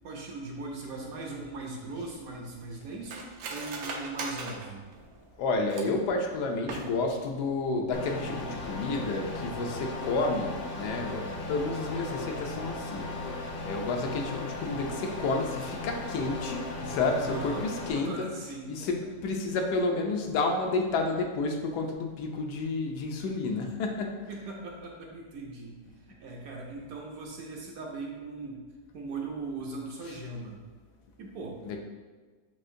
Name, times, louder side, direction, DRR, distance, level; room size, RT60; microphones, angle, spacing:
voice 1, 0.0-4.8 17.3-18.9 24.3-25.8 26.0-28.6 28.9-30.6 31.2-31.6, right 3 dB, 65° right, 0 dB, 1.0 m, -39 dB
Cutlery silverware, 1.6-6.1 6.6-7.3 7.6-7.7 8.0-8.4 8.7-8.9, right 4 dB, 85° right, 1.2 m, -40 dB
voice 2, 5.4-13.1 13.6-18.3 18.7-24.1 31.6-31.8, left 3 dB, 80° left, 2 dB, 1.1 m, -30 dB
sound 1, 7.9-17.9, left 2 dB, 60° left, 0.8 m, -37 dB
7.3 x 2.5 x 2.6 m, 1.4 s
omnidirectional pair, 1.8 m